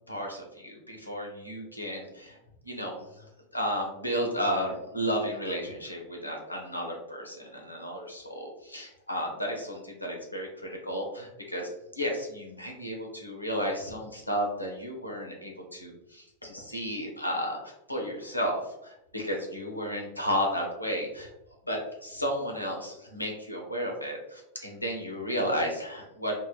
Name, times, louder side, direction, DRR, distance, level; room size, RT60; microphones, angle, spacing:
voice 1, 0.1-2.4 2.6-3.0 3.5-11.7 12.0-21.3 21.7-26.3, equal, 85° left, 0 dB, 0.5 m, -33 dB
2.8 x 2.3 x 2.3 m, 0.89 s
figure-of-eight pair, 90°, 0 cm